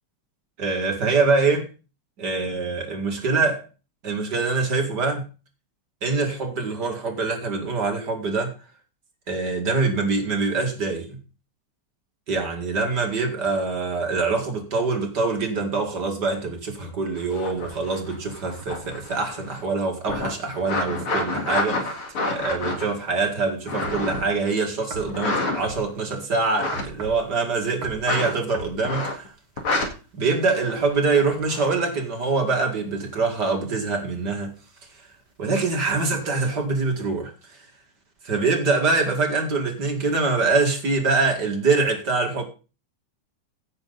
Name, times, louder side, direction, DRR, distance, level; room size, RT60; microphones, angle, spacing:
voice 1, 0.6-1.7 2.2-3.6 4.0-5.2 6.0-8.5 9.3-11.2 12.3-21.9 22.3-29.3 30.1-34.5 35.4-37.3 38.2-42.5, right 4 dB, 50° right, 2.6 m, -24 dB
sound 1, 17.2-19.7 20.0-24.3 25.1-26.0 26.4-26.8 28.0-28.4 28.8-29.3 29.6-29.9 30.6-31.7 36.2-36.5, left 2 dB, 85° left, 3.0 m, -29 dB
sound 2, 23.8-24.3 24.9-25.1 25.6-25.8 26.7-27.2 27.8-28.1 28.5-28.8, right 4 dB, 80° right, 2.3 m, -36 dB
16.0 x 6.7 x 4.0 m
omnidirectional pair, 2.3 m